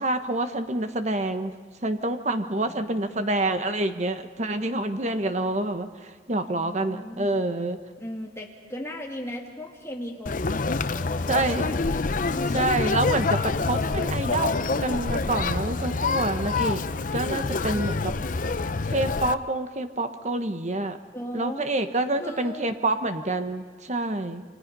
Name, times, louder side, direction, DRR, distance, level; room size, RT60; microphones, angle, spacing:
voice 1, 0.0-1.5 1.8-7.8 11.3-11.7 12.5-16.8 17.1-18.1 18.9-21.0 21.3-24.4, right 2 dB, 35° right, 8 dB, 1.2 m, -27 dB
voice 2, 2.6-3.3 6.5-7.3 8.0-12.7 21.1-21.7 22.2-22.7, equal, 15° left, 0 dB, 2.4 m, -38 dB
Conversation, 10.3-19.3, left 3 dB, 45° left, 0.6 m, -26 dB
29.0 x 24.0 x 5.5 m, 1.4 s
head